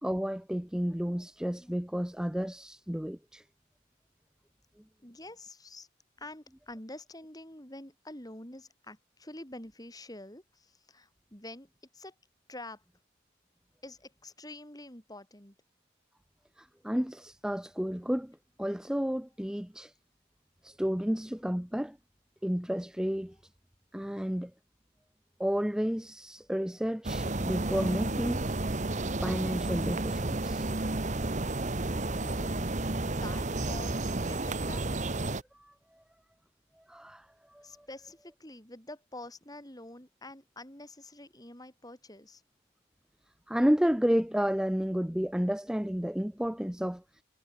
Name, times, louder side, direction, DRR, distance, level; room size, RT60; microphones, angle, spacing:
voice 1, 0.0-3.4 16.6-19.9 20.6-22.0 22.4-23.4 23.9-24.5 25.4-28.4 29.2-30.7 35.6-35.7 36.9-37.3 37.5-37.9 43.5-47.0, equal, 5° right, 0.5 m, -31 dB
voice 2, 5.0-5.9 6.2-12.1 12.5-12.8 13.8-15.6 32.2-32.7 33.1-35.3 37.6-42.4, left 2 dB, 20° left, 4.4 m, -47 dB
sound 1, 27.0-35.4, right 2 dB, 35° right, 1.4 m, -31 dB
head